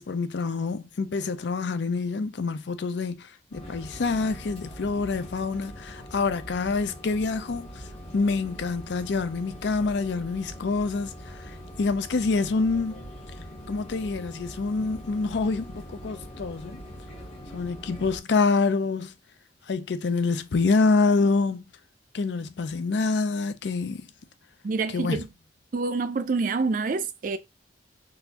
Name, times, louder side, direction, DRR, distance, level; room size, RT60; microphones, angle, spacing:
voice 1, 0.0-7.9 8.1-13.1 13.7-16.8 17.5-19.1 19.7-21.6 22.1-24.1 24.9-25.2, left 4 dB, 70° left, 0.5 m, -26 dB
sound 1, 3.5-18.2, equal, 35° left, 1.3 m, -42 dB
voice 2, 24.6-25.3 25.7-27.4, right 4 dB, 45° right, 0.4 m, -27 dB
3.9 x 2.5 x 2.8 m
head